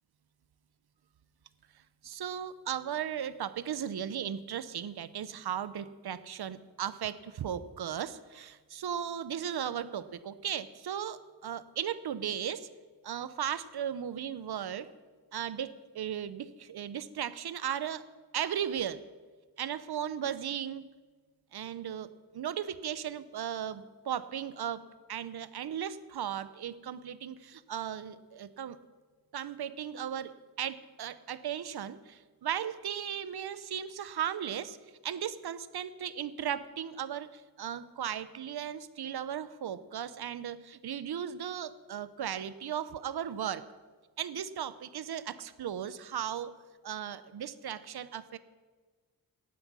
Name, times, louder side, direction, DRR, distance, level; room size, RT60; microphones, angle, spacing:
voice 1, 2.0-12.7 13.0-14.9 15.3-18.1 18.3-19.0 19.6-20.9 21.5-22.1 22.3-24.8 25.1-28.8 29.3-30.3 30.6-34.8 35.0-43.6 44.2-46.6 46.8-48.4, right 9 dB, 75° right, 15 dB, 0.8 m, -36 dB
18.0 x 7.8 x 6.1 m, 1.4 s
wide cardioid pair, 85°, 39 cm